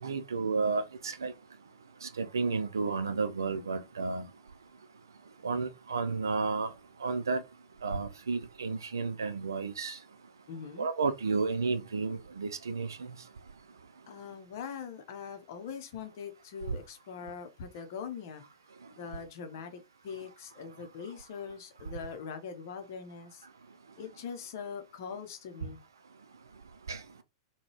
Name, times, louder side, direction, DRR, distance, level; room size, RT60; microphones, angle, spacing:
voice 1, 0.0-1.3 2.0-4.3 5.4-6.7 7.0-7.4 7.8-10.0 10.8-13.1 26.9-27.0, right 4 dB, 70° right, 0.5 m, -32 dB
voice 2, 10.5-10.9 14.1-18.4 18.9-23.4 24.0-25.8, left 6 dB, 50° left, 0.7 m, -42 dB
3.8 x 2.2 x 3.0 m
figure-of-eight pair, 100°, 2 cm